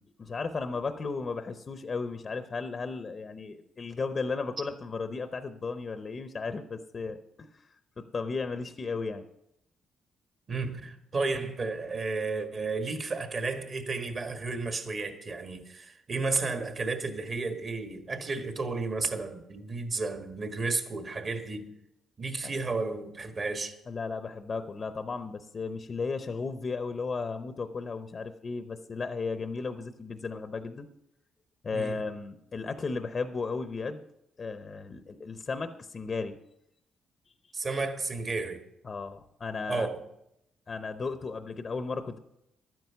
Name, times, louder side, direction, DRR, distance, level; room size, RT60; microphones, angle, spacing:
voice 1, 0.0-7.5 8.0-9.3 22.4-22.6 23.9-30.9 31.6-34.0 34.4-36.4 38.8-39.9 40.7-42.2, left 4 dB, 40° left, 0.7 m, -35 dB
voice 2, 10.5-21.7 22.2-23.7 31.7-32.0 37.5-38.6 39.7-40.0, right 3 dB, 40° right, 1.6 m, -32 dB
12.0 x 9.4 x 5.8 m
cardioid pair, 90°, 0 cm